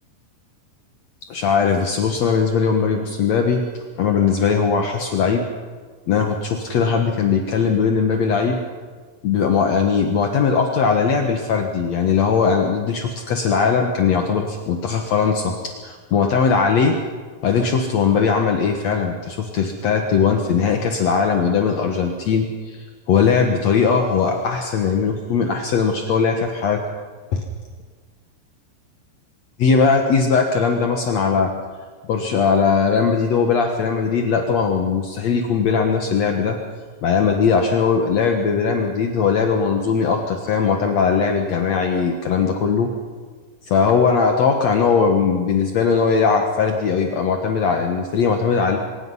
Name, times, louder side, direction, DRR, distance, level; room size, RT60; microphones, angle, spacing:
voice 1, 1.3-3.6 4.0-5.5 6.1-8.6 9.2-17.0 17.4-26.8 27.3-27.4 29.6-31.5 32.1-36.6 37.0-42.9 43.7-48.8, left 5 dB, 75° left, 3 dB, 1.5 m, -19 dB
24.5 x 21.0 x 5.6 m, 1.5 s
omnidirectional pair, 5.1 m